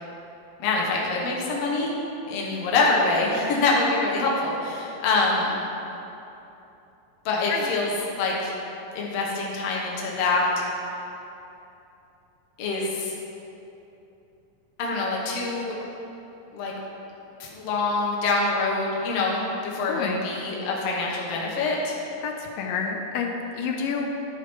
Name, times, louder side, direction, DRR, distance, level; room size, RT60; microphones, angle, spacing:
voice 1, 0.6-1.9 2.3-5.5 7.2-8.5 8.9-10.6 12.6-13.1 14.8-15.8 16.5-16.7 17.4-22.0, left 3 dB, 60° left, -3 dB, 1.6 m, -25 dB
voice 2, 19.9-20.3 22.2-24.1, left 6 dB, 85° left, 2 dB, 2.3 m, -29 dB
11.5 x 4.9 x 4.4 m, 2.9 s
omnidirectional pair, 4.1 m